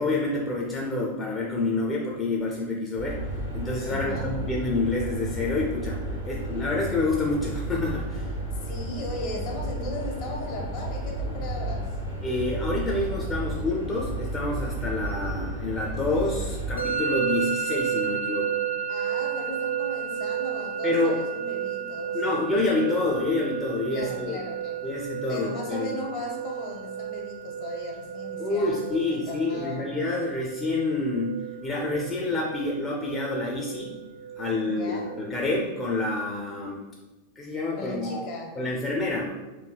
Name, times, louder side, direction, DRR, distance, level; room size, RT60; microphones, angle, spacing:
voice 1, 0.0-3.2 3.5-8.3 12.2-18.6 20.8-21.2 22.1-24.4 24.8-26.0 28.4-33.9 34.4-36.8 37.4-38.3 38.6-39.3, left 2 dB, 20° left, -3 dB, 0.5 m, -28 dB
sound 1, 3.0-16.8, right 1 dB, 85° right, 1.0 m, -32 dB
voice 2, 3.8-4.4 8.6-12.0 18.9-22.2 23.9-24.9 25.3-29.9 34.7-35.1 37.8-38.5, left 2 dB, 45° left, 0 dB, 0.8 m, -37 dB
Musical instrument, 16.8-35.7, right 9 dB, 70° left, 0.5 m, -32 dB
4.6 x 2.7 x 2.3 m, 1.2 s
figure-of-eight pair, 90°, 0 cm